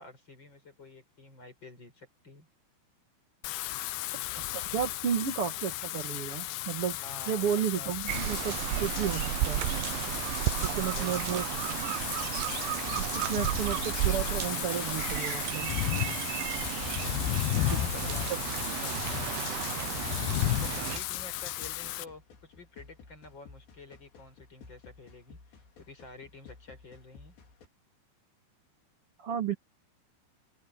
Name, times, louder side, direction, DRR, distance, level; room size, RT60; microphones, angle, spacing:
voice 1, 0.0-2.5 7.0-8.1 10.5-11.2 17.5-19.9 20.5-27.3, left 2 dB, 25° left, 5.9 m, -50 dB
Wind / Rain, 3.4-22.1, left 17 dB, 85° left, 2.2 m, -34 dB
voice 2, 4.5-7.0 7.3-9.6 10.6-11.4 13.0-15.7 17.7-18.1 29.2-29.5, right 8 dB, 60° right, 1.5 m, -33 dB
sound 1, 8.1-21.0, right 17 dB, 80° right, 3.1 m, -33 dB
sound 2, 18.4-27.7, left 4 dB, 65° left, 6.3 m, -55 dB
open air
omnidirectional pair, 5.4 m